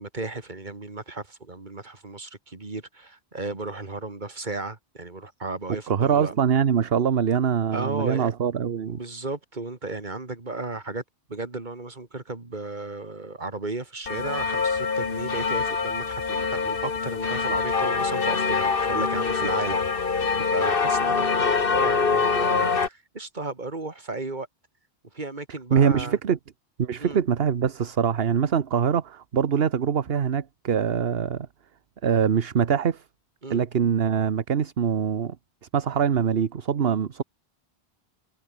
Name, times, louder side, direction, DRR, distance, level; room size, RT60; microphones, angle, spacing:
voice 1, 0.0-6.3 7.7-8.3 8.9-11.0 11.3-24.5 25.1-26.2 27.0-27.2 33.4-33.6, right 3 dB, 45° right, 2.7 m, -34 dB
voice 2, 5.9-9.0 25.7-26.4 26.8-31.5 32.0-33.0 33.5-35.4 35.7-37.2, right 7 dB, 65° right, 1.2 m, -23 dB
sound 1, 14.1-22.9, left 5 dB, 55° left, 1.7 m, -24 dB
omnidirectional pair, 1.1 m